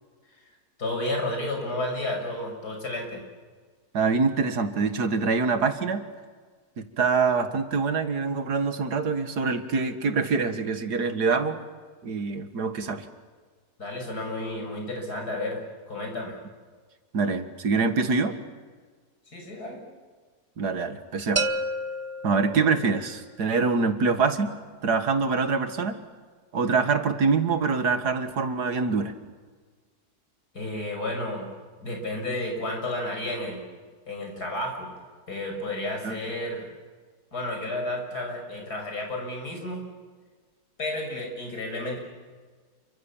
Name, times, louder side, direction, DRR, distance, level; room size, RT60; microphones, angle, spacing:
voice 1, 0.8-3.2 13.8-16.4 19.3-19.8 30.5-31.5 31.8-33.6 34.1-34.9 35.3-36.7 37.3-39.8 40.8-42.0, left 1 dB, 75° left, 2 dB, 6.7 m, -32 dB
voice 2, 3.9-6.1 6.8-11.6 12.0-13.1 17.1-18.4 20.6-21.5 22.2-24.5 24.8-26.0 26.5-29.1 36.0-36.2, right 4 dB, 80° right, 9 dB, 2.3 m, -25 dB
sound 1, 21.4-23.2, right 1 dB, 40° right, 0.4 m, -30 dB
29.0 x 24.0 x 7.2 m, 1.5 s
omnidirectional pair, 1.7 m